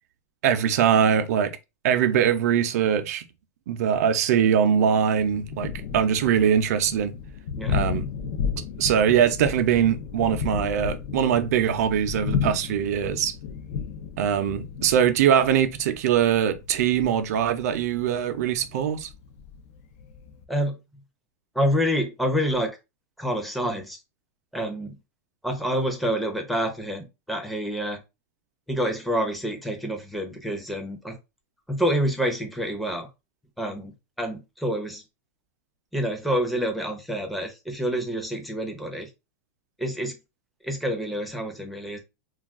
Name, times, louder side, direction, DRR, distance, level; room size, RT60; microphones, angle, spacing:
voice 1, 0.4-1.6 1.8-3.2 3.7-7.1 7.7-8.1 8.8-13.3 14.2-19.1, right 8 dB, 70° right, 0.5 m, -22 dB
Thunder, 5.2-20.4, left 6 dB, 55° left, 0.5 m, -33 dB
voice 2, 21.5-22.8 23.2-24.0 24.5-25.0 25.4-28.0 28.7-31.2 31.7-33.1 33.6-33.9 34.2-35.0 35.9-39.1 39.8-40.2 40.6-42.0, equal, ahead, 0.6 m, -27 dB
2.3 x 2.3 x 3.5 m
supercardioid pair, 150°, 9 cm